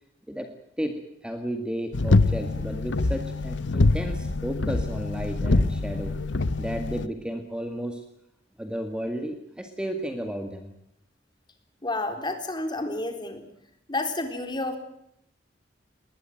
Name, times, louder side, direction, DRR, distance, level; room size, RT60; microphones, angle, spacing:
voice 1, 0.8-6.2 6.6-8.0 8.6-10.7, equal, 5° right, 6 dB, 1.9 m, -33 dB
sound 1, 1.9-7.1, left 2 dB, 70° left, 0.9 m, -24 dB
voice 2, 11.8-13.4 13.9-14.8, left 2 dB, 25° left, 7 dB, 3.9 m, -30 dB
20.5 x 20.0 x 9.0 m, 0.75 s
head